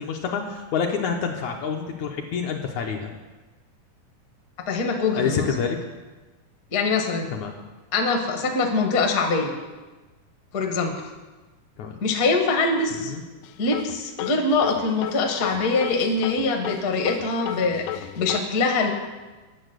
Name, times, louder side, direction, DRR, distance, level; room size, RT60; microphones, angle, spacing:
voice 1, 0.0-3.1 5.1-5.8 7.3-7.5 11.8-12.0 13.0-13.2, left 6 dB, 70° left, 2 dB, 1.8 m, -27 dB
voice 2, 4.7-5.5 6.7-7.3 7.9-9.5 10.5-10.9 12.0-13.1 13.6-18.9, left 3 dB, 55° left, 2 dB, 1.0 m, -23 dB
sound 1, 13.4-18.4, left 12 dB, 90° left, 1.7 m, -33 dB
10.0 x 7.1 x 8.0 m, 1.2 s
omnidirectional pair, 4.0 m